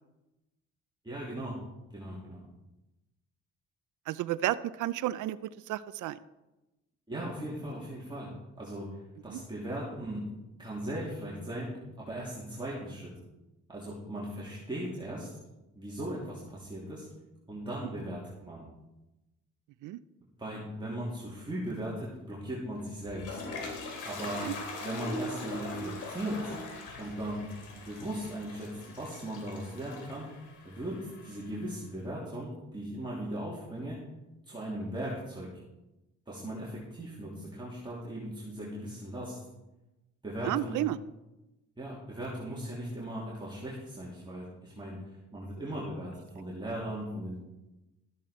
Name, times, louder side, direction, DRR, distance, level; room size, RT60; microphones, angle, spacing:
voice 1, 1.0-1.6 1.9-2.4 7.1-10.3 10.6-13.1 13.7-15.3 15.7-17.1 17.5-18.7 20.4-23.4 24.0-24.5 24.8-26.5 27.0-27.5 27.7-30.3 30.6-34.0 34.5-35.5 36.3-39.4 40.2-40.8 41.8-47.4, right 1 dB, 15° right, -6 dB, 2.8 m, -38 dB
voice 2, 4.1-6.2 9.3-9.4 19.8-20.0 24.4-24.5 40.5-41.0, right 14 dB, 80° right, 16 dB, 0.5 m, -32 dB
Toilet flush, 22.8-31.7, left 2 dB, 80° left, 2.7 m, -41 dB
13.5 x 9.0 x 4.3 m, 1.0 s
cardioid pair, 90°, 30 cm